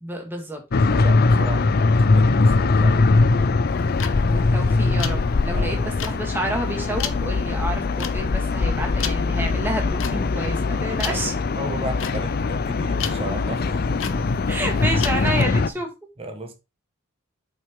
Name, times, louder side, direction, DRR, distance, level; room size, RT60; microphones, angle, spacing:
voice 1, 0.0-0.6 4.3-5.8 6.0-11.3 14.5-15.9, right 1 dB, 10° right, 1.8 m, -29 dB
sound 1, 0.7-15.7, left 3 dB, 45° left, 0.5 m, -21 dB
voice 2, 0.7-3.1 5.5-6.1 10.1-10.3 11.0-13.7 16.2-16.5, right 2 dB, 25° right, 1.1 m, -35 dB
sound 2, 3.7-15.4, left 9 dB, 60° left, 0.9 m, -35 dB
7.7 x 5.9 x 3.7 m
head